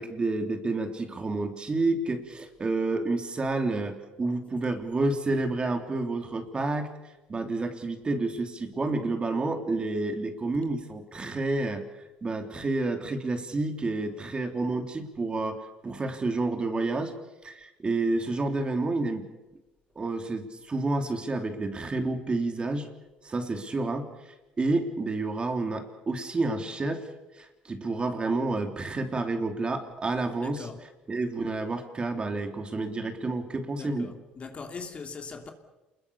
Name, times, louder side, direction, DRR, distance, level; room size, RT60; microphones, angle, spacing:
voice 1, 0.0-6.9 7.3-11.8 12.2-17.1 17.4-19.2 19.9-22.9 23.2-24.1 24.6-27.1 27.3-30.7 31.1-34.1, right 2 dB, 25° right, 3.2 m, -29 dB
voice 2, 30.4-30.8 33.8-35.5, left 4 dB, 30° left, 2.9 m, -40 dB
28.0 x 21.5 x 7.1 m
cardioid pair, 100°, 4 cm